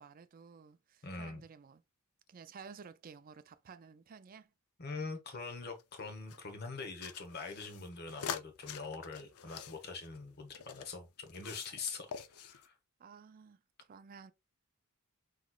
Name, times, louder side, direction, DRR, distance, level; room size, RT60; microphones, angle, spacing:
voice 1, 0.0-1.8 2.3-4.5 7.7-7.8 13.0-14.3, right 5 dB, 40° right, 0.4 m, -53 dB
voice 2, 1.0-1.4 4.8-12.7, left 4 dB, 45° left, 1.0 m, -43 dB
sound 1, 5.4-6.4 7.0-10.9 11.3-11.9 12.1-12.7, left 7 dB, 75° left, 0.5 m, -45 dB
6.0 x 3.0 x 2.3 m
head